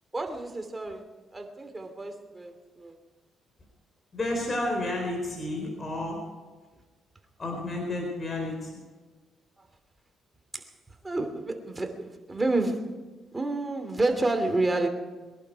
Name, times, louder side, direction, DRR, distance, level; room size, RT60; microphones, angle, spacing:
voice 1, 0.1-1.0 1.3-3.0 10.5-10.7 11.0-13.0 13.3-14.9, right 2 dB, 20° right, 5 dB, 2.7 m, -29 dB
voice 2, 4.1-6.2 7.4-8.8, left 1 dB, 35° left, 1 dB, 4.6 m, -31 dB
23.0 x 11.5 x 4.7 m, 1.4 s
cardioid pair, 90°, 0 cm